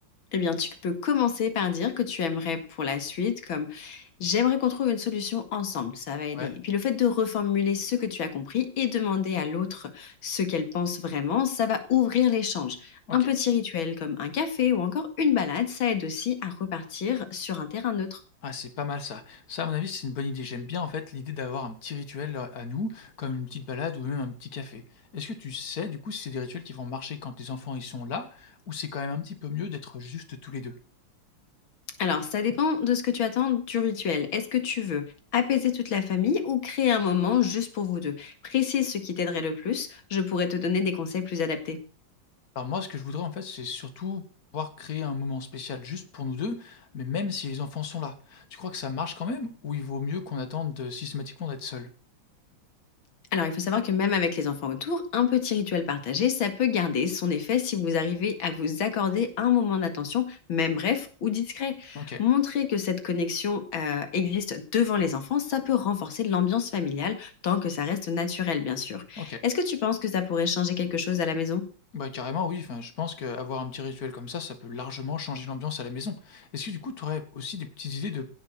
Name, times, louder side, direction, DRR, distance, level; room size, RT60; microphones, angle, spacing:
voice 1, 0.3-18.2 32.0-35.0 35.3-41.8 53.3-71.6, left 7 dB, 85° left, 9 dB, 2.7 m, -27 dB
voice 2, 18.4-24.8 25.1-30.8 42.6-44.2 44.5-51.9 61.9-62.2 69.2-69.4 71.9-78.3, left 5 dB, 50° left, 10 dB, 2.2 m, -34 dB
17.0 x 8.7 x 6.2 m, 0.40 s
omnidirectional pair, 2.1 m